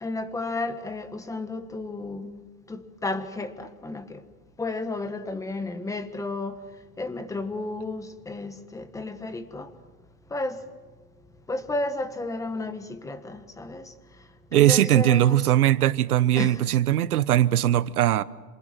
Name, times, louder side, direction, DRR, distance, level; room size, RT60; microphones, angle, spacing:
voice 1, 0.0-4.2 4.6-6.6 7.0-9.7 10.3-10.6 11.5-13.9 14.5-15.5 16.3-16.6, left 2 dB, 5° left, 1.4 m, -32 dB
voice 2, 14.5-18.2, right 12 dB, 70° right, 1.2 m, -20 dB
28.0 x 27.0 x 7.6 m
hypercardioid pair, 135°, 46 cm